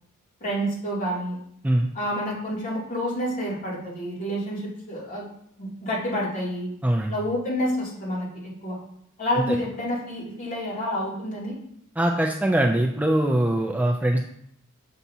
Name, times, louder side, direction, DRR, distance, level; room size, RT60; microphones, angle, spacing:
voice 1, 0.4-1.4 1.9-5.3 5.6-6.7 7.1-8.3 8.6-8.8 9.2-11.6, equal, 40° left, -7 dB, 2.6 m, -28 dB
voice 2, 6.8-7.1 9.4-9.6 12.0-14.2, right 1 dB, 5° right, 2 dB, 0.3 m, -22 dB
7.2 x 5.5 x 2.7 m, 0.72 s
head